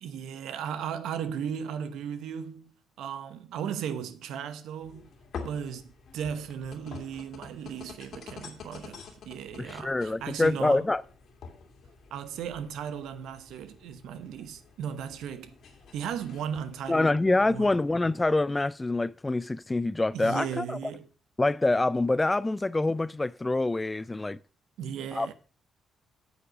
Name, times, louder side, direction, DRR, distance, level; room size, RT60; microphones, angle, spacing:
voice 1, 0.0-5.1 5.4-10.9 12.1-15.5 15.9-17.2 17.5-17.7 20.1-21.1 24.8-25.3, right 8 dB, 80° right, 0.9 m, -36 dB
sound 1, 4.8-18.4, left 5 dB, 65° left, 2.2 m, -48 dB
voice 2, 9.6-11.0 16.9-20.8 21.4-24.4 25.1-25.3, left 2 dB, 15° left, 0.4 m, -26 dB
8.6 x 7.1 x 5.1 m
cardioid pair, 90°, 0 cm